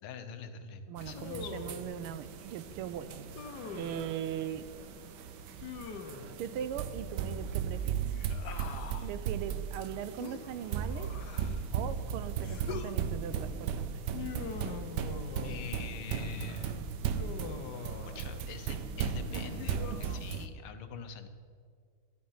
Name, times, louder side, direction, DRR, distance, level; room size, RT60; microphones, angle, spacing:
voice 1, 0.0-1.5 15.4-16.8 18.2-21.3, left 5 dB, 80° left, 8 dB, 1.9 m, -44 dB
voice 2, 0.9-3.1 3.7-4.6 6.4-8.2 8.5-8.7 9.0-11.1 11.7-13.8 19.9-20.0, right 9 dB, 90° right, 13 dB, 1.6 m, -39 dB
sound 1, 1.0-20.5, right 7 dB, 65° right, 1.2 m, -37 dB
Human voice, 1.1-1.9 3.3-4.0 5.6-6.4 8.0-9.1 10.2-11.7 12.4-13.0 14.1-15.7 17.1-18.3 19.3-20.2, left 6 dB, 60° left, 1.3 m, -43 dB
12.5 x 12.0 x 5.8 m, 2.1 s
omnidirectional pair, 2.4 m